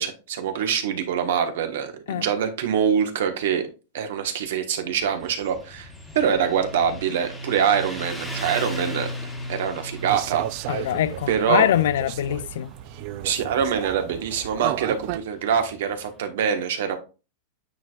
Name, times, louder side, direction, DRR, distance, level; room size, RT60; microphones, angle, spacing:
voice 1, 0.0-3.7 3.9-5.9 6.1-10.9 11.3-11.7 13.2-17.0, right 8 dB, 70° right, 1.3 m, -24 dB
Motorcycle, 5.0-16.1, equal, 5° left, 1.2 m, -37 dB
sound 1, 10.0-15.2, right 15 dB, 45° right, 0.3 m, -34 dB
voice 2, 10.7-12.7, left 11 dB, 75° left, 0.5 m, -23 dB
9.1 x 4.5 x 2.4 m
supercardioid pair, 160°, 0 cm